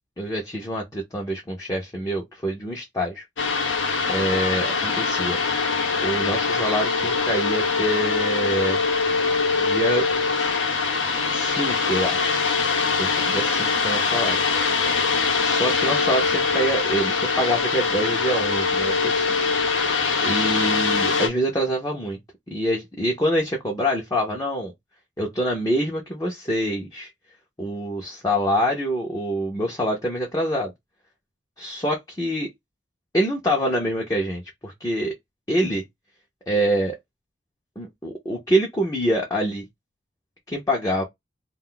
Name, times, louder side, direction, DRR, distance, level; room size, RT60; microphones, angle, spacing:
voice 1, 0.2-3.2 4.1-5.4 6.0-8.8 9.6-10.0 11.3-12.5 13.0-14.4 15.3-19.4 20.2-22.2 22.5-24.7 25.2-27.1 27.6-30.7 31.6-32.5 33.1-35.1 35.5-35.8 36.5-37.0 37.8-39.7 40.5-41.0, equal, 20° left, 0.5 m, -25 dB
sound 1, 3.4-21.3, left 4 dB, 85° left, 0.7 m, -23 dB
2.4 x 2.2 x 3.7 m
head